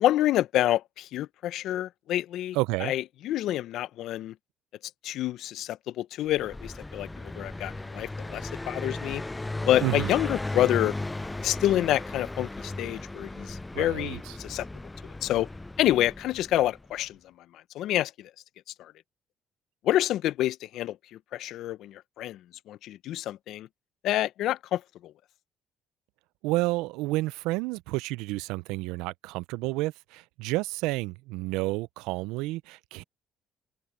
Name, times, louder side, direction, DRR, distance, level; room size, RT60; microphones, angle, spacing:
voice 1, 0.0-4.3 5.0-9.2 9.7-10.9 11.4-14.7 15.2-15.5 15.8-17.2 17.7-18.3 18.8-18.9 19.8-21.0 21.3-22.4 22.7-23.7 24.0-25.1, left 13 dB, 75° left, 0.7 m, -28 dB
voice 2, 2.5-2.9 9.8-10.1 13.7-14.3 26.4-33.0, right 20 dB, 85° right, 0.4 m, -30 dB
Car passing by, 6.3-16.9, left 2 dB, 15° left, 0.3 m, -36 dB
supercardioid pair, 70°, 0 cm